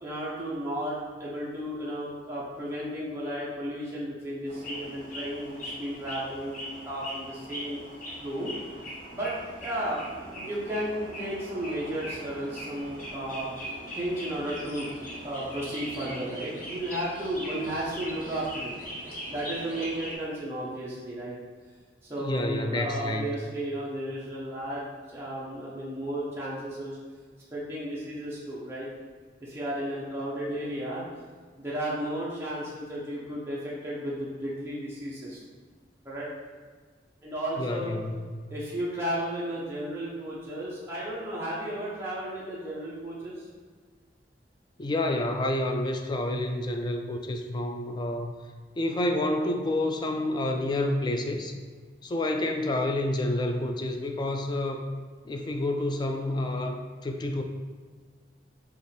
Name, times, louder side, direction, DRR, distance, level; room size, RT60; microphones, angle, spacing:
voice 1, 0.0-7.8 8.2-8.5 9.1-9.3 9.6-10.0 10.3-13.5 13.9-14.9 15.2-18.7 19.3-21.4 22.1-27.0 27.5-28.9 29.4-31.0 31.6-35.4 36.0-36.3 37.2-37.9 38.5-43.5, right 1 dB, 15° right, -8 dB, 0.8 m, -33 dB
sound 1, 4.5-20.2, equal, 50° left, 1.2 m, -40 dB
voice 2, 22.2-23.3 37.6-38.3 44.8-48.3 48.8-51.5 52.0-54.8 55.3-57.4, left 1 dB, 25° left, 5 dB, 0.3 m, -29 dB
5.2 x 2.5 x 3.2 m, 1.5 s
head